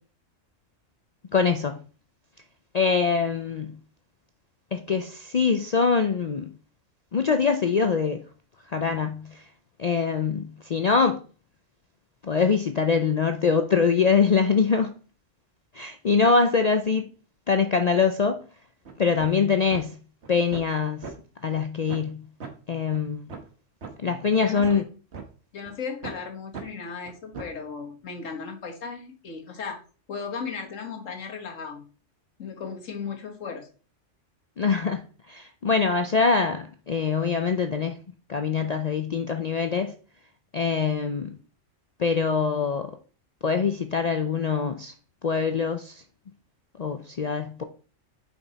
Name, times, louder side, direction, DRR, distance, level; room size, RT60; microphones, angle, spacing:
voice 1, 1.3-1.8 2.7-3.8 4.7-6.5 7.1-8.2 8.7-9.4 9.8-11.2 12.2-14.9 15.7-17.1 17.5-18.4 19.0-20.0 20.3-21.1 21.4-22.2 22.7-23.2 24.0-24.8 34.6-35.0 35.3-38.0 38.3-39.9 40.5-41.4 42.0-42.9 43.4-44.9 45.2-46.0 46.8-47.6, left 5 dB, 55° left, 0.4 m, -23 dB
sound 1, 18.9-19.0 19.2-19.4 19.7-19.8 20.2-20.8 21.0-21.1 21.5-21.6 21.9-22.1 22.4-22.5 22.9-23.0 23.3-23.5 23.8-23.9 24.3-25.2 25.6-25.7 26.0-26.2 26.5-26.7 27.1-27.6, right 5 dB, 60° right, 1.4 m, -38 dB
voice 2, 24.4-24.8 25.5-29.8 30.1-31.9 32.4-33.7, left 5 dB, 80° left, 1.7 m, -36 dB
6.0 x 5.2 x 4.0 m
omnidirectional pair, 1.3 m